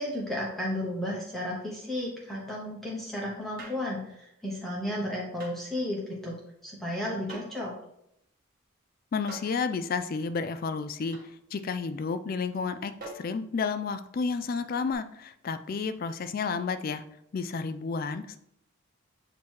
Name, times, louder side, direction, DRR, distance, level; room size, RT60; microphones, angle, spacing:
voice 1, 0.0-6.3 6.6-7.7, left 1 dB, ahead, -4 dB, 0.9 m, -33 dB
sound 1, 3.6-3.9 5.4-5.6 7.3-7.6 9.3-9.6 11.1-11.3 13.0-13.4 14.9-15.0, right 2 dB, 40° right, 1.3 m, -44 dB
voice 2, 9.1-17.0 17.3-18.4, left 5 dB, 40° left, 12 dB, 0.3 m, -31 dB
7.3 x 3.0 x 4.5 m, 0.75 s
head